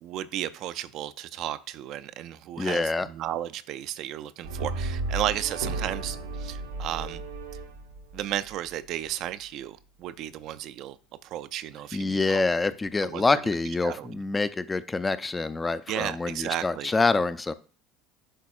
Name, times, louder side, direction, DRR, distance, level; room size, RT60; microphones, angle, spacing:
voice 1, 0.0-7.2 8.1-11.0 11.2-12.4 13.0-13.4 13.8-14.2 15.9-16.9, right 12 dB, 50° right, 0.4 m, -34 dB
voice 2, 2.6-3.1 11.9-17.5, left 3 dB, 15° left, 0.4 m, -26 dB
Brass instrument, 4.4-8.7, right 2 dB, 75° right, 0.9 m, -34 dB
11.0 x 4.1 x 2.3 m
figure-of-eight pair, 65°, 0 cm